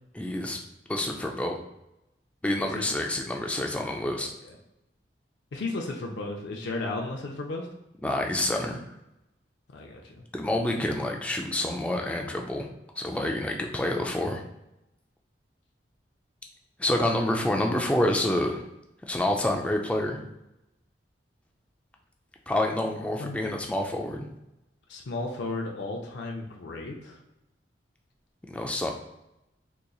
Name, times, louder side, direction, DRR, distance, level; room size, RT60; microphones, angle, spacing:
voice 1, 0.1-0.6 0.9-1.6 2.4-4.3 8.0-8.8 10.3-12.7 13.0-14.4 16.8-18.6 19.1-20.2 22.5-24.2 28.5-28.9, left 1 dB, 5° left, 2 dB, 0.3 m, -28 dB
voice 2, 5.5-7.7 9.7-10.2 23.2-23.6 24.9-27.2, left 2 dB, 70° left, 0 dB, 0.5 m, -34 dB
3.8 x 2.9 x 2.3 m, 0.91 s
head